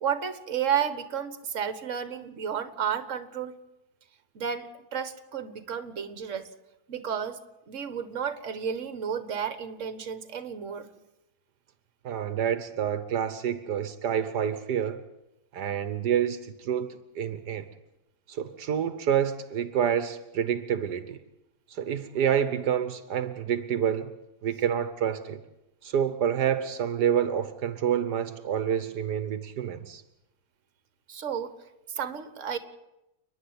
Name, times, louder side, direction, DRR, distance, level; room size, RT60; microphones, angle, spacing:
voice 1, 0.0-3.5 4.3-6.5 6.9-7.4 7.7-10.9 31.1-31.5 31.9-32.6, right 8 dB, 50° right, 11 dB, 1.7 m, -32 dB
voice 2, 12.0-15.0 15.5-17.6 18.3-21.2 21.7-24.1 24.4-25.4 25.8-30.0, right 9 dB, 80° right, 12 dB, 1.6 m, -28 dB
29.5 x 10.5 x 9.6 m, 0.92 s
omnidirectional pair, 1.8 m